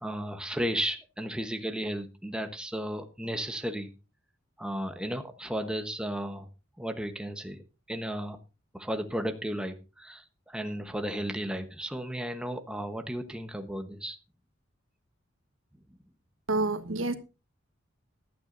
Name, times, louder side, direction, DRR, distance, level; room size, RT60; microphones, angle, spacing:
voice 1, 0.0-3.9 4.6-6.5 6.8-7.6 7.9-8.4 8.7-14.2, equal, 5° right, 6 dB, 1.1 m, -34 dB
voice 2, 16.5-17.1, right 2 dB, 75° right, 8 dB, 1.4 m, -28 dB
16.0 x 12.0 x 2.6 m, 0.30 s
head